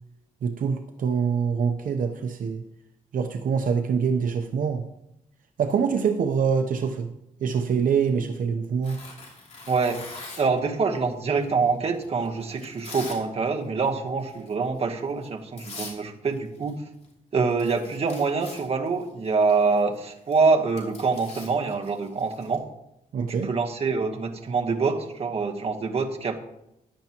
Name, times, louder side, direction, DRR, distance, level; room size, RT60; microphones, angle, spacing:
voice 1, 0.4-2.6 3.1-4.8 5.6-7.1 7.4-9.0 23.1-23.5, right 6 dB, 65° right, 5 dB, 0.8 m, -25 dB
Tearing, 8.8-10.6 11.4-13.2 13.5-13.9 14.3-14.5 15.2-15.3 15.6-16.0 16.3-16.8 17.0-17.1 17.4-22.5, left 3 dB, 45° left, 2.9 m, -43 dB
voice 2, 9.7-10.1 10.4-16.8 17.3-22.7 23.2-26.4, right 4 dB, 45° right, 4 dB, 1.2 m, -25 dB
14.0 x 10.5 x 3.0 m, 0.85 s
wide cardioid pair, 130°, 15 cm